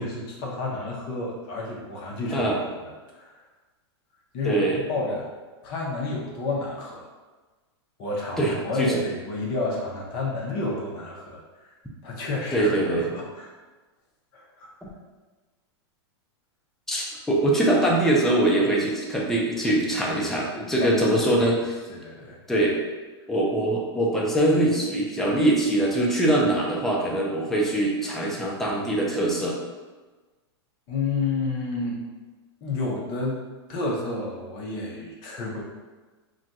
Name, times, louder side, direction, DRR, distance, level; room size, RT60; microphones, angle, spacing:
voice 1, 0.0-2.5 3.0-3.4 4.3-4.6 4.9-5.3 5.6-7.1 8.0-11.7 12.0-13.5 14.3-14.7 20.8-21.6 21.9-22.4 30.9-32.0 32.6-33.4 33.7-35.6, left 3 dB, 35° left, -3 dB, 0.6 m, -30 dB
voice 2, 4.4-4.8 8.4-9.0 12.5-13.1 16.9-21.8 22.5-22.8 23.3-29.6, right 1 dB, 5° left, -3 dB, 0.4 m, -23 dB
2.4 x 2.2 x 4.0 m, 1.3 s
hypercardioid pair, 145°, 14 cm